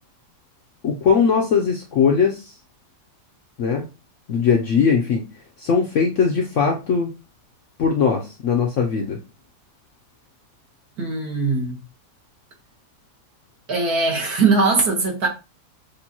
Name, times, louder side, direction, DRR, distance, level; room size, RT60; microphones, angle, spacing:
voice 1, 0.8-2.5 3.6-3.9 4.3-5.2 5.6-7.1 7.8-9.2, left 6 dB, 65° left, 0.8 m, -20 dB
voice 2, 11.0-11.8 13.7-15.3, right 4 dB, 65° right, 1.7 m, -20 dB
6.7 x 2.5 x 2.8 m
omnidirectional pair, 1.8 m